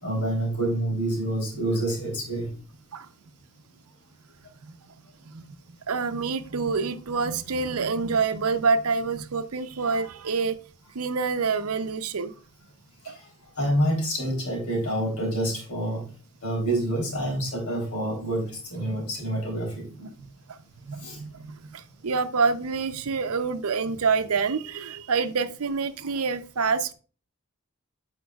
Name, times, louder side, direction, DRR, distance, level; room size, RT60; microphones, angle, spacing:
voice 1, 0.0-2.5 13.0-13.2 13.5-16.1 16.4-20.1 21.0-21.2, right 1 dB, 90° left, 0 dB, 3.4 m, -27 dB
voice 2, 5.9-10.6 10.9-12.3 13.1-13.2 20.9-21.3 21.7-26.9, right 4 dB, 85° right, 11 dB, 0.7 m, -26 dB
10.0 x 5.3 x 2.3 m, 0.36 s
head